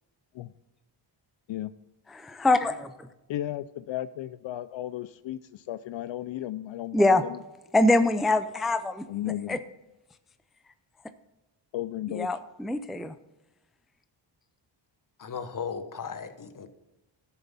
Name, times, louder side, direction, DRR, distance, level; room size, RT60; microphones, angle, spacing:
voice 1, 2.1-2.9 6.9-7.2 7.7-9.1 9.5-9.6 12.2-13.1, left 2 dB, ahead, 0.4 m, -23 dB
voice 2, 3.3-7.4 9.1-9.6 11.7-12.3, left 13 dB, 65° left, 0.5 m, -34 dB
voice 3, 15.2-16.7, left 6 dB, 40° left, 1.1 m, -36 dB
12.5 x 7.1 x 4.1 m
cardioid pair, 80°, 48 cm